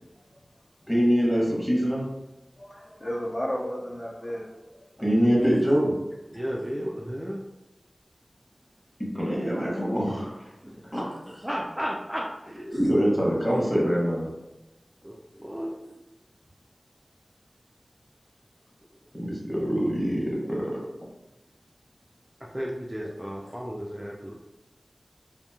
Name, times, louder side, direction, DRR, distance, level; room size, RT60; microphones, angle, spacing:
voice 1, 0.9-2.1 5.0-5.9 9.0-10.5 10.9-11.4 12.7-14.3 19.1-20.8, equal, 5° left, -4 dB, 0.9 m, -24 dB
voice 2, 2.6-4.8 5.0-5.3, equal, 40° left, -4 dB, 0.5 m, -33 dB
voice 3, 5.2-5.6 6.3-7.4 10.6-11.1 11.4-13.5 15.0-15.8 22.5-24.3, equal, 10° right, -4 dB, 0.3 m, -34 dB
2.9 x 2.5 x 2.3 m, 0.99 s
wide cardioid pair, 60°, 0 cm